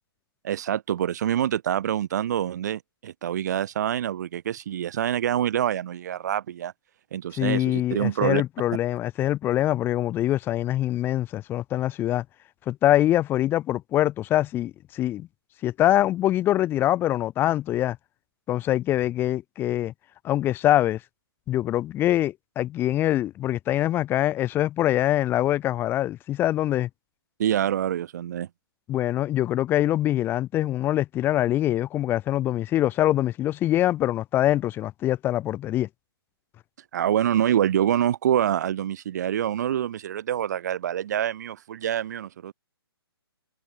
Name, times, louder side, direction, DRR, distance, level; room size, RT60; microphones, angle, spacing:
voice 1, 0.4-6.7 7.1-8.4 27.4-28.5 36.9-42.5, right 10 dB, 45° right, 1.2 m, -26 dB
voice 2, 7.4-12.2 12.7-15.3 15.6-18.0 18.5-19.9 20.2-21.0 21.5-26.9 28.9-35.9, left 13 dB, 15° left, 1.6 m, -24 dB
figure-of-eight pair, 130°, 13 cm